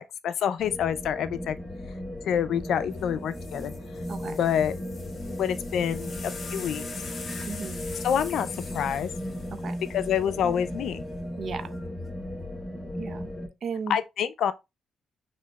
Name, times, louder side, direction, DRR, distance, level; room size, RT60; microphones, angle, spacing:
voice 1, 0.0-1.6 2.2-3.7 4.2-4.8 5.3-6.8 8.0-8.5 8.7-9.1 9.9-11.0 13.9-14.5, left 9 dB, 70° left, 0.4 m, -27 dB
sound 1, 0.6-13.5, left 1 dB, ahead, 1.8 m, -36 dB
sound 2, 3.0-3.1 3.3-10.7 11.6-12.1, left 4 dB, 40° left, 0.8 m, -44 dB
voice 2, 4.1-4.4 7.5-7.8 9.5-9.8 11.4-11.7 13.0-13.3 13.6-14.0, right 5 dB, 55° right, 0.5 m, -35 dB
6.0 x 2.9 x 2.3 m
cardioid pair, 90°, 0 cm